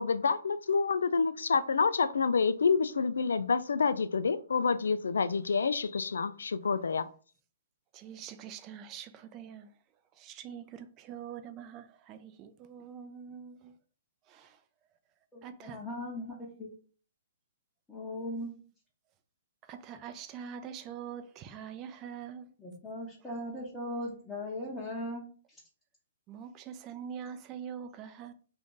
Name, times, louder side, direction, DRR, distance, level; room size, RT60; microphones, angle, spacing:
voice 1, 0.0-7.1, left 5 dB, 80° left, 0.3 m, -28 dB
voice 2, 7.9-9.7 10.2-13.7 14.3-14.6 15.4-15.8 19.7-22.5 26.3-28.3, right 8 dB, 30° right, 0.4 m, -44 dB
voice 3, 15.3-16.7 17.9-18.5 22.6-25.6, left 1 dB, 10° left, 0.8 m, -39 dB
2.5 x 2.5 x 3.7 m
hypercardioid pair, 130°, 0 cm